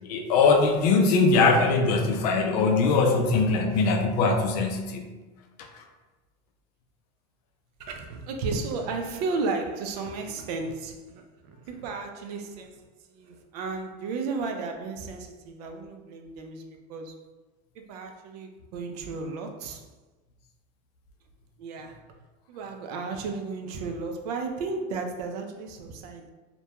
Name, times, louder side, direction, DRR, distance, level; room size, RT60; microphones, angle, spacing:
voice 1, 0.0-5.1 5.7-5.8, left 4 dB, 80° left, 3 dB, 0.5 m, -22 dB
voice 2, 7.8-12.9 13.1-17.2 17.9-19.8 21.6-22.0 22.5-26.3, right 4 dB, 85° right, 4 dB, 0.4 m, -34 dB
2.2 x 2.2 x 2.8 m, 1.2 s
cardioid pair, 175°, 20 cm